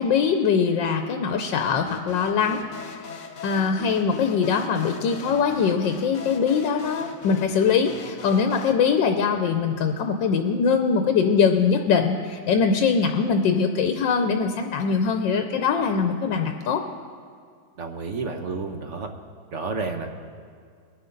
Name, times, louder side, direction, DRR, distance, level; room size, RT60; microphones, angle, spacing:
voice 1, 0.0-3.0 3.4-16.8, left 6 dB, 75° left, 5 dB, 1.4 m, -22 dB
sound 1, 1.9-8.7, left 6 dB, 55° left, 0.8 m, -40 dB
voice 2, 17.8-19.1 19.5-20.1, right 4 dB, 50° right, 5 dB, 1.0 m, -30 dB
21.5 x 10.0 x 3.9 m, 2.2 s
omnidirectional pair, 2.1 m